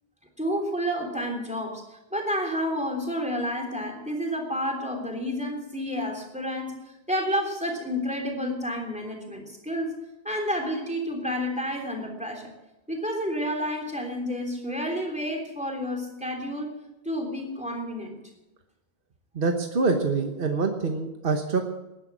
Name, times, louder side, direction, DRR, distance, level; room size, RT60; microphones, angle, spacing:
voice 1, 0.4-1.8 2.1-6.7 7.1-9.9 10.3-12.5 12.9-16.7 17.1-18.2, equal, 5° right, 2 dB, 3.3 m, -30 dB
voice 2, 19.3-21.7, right 4 dB, 60° right, 4 dB, 1.3 m, -25 dB
18.5 x 10.5 x 6.2 m, 0.98 s
omnidirectional pair, 1.0 m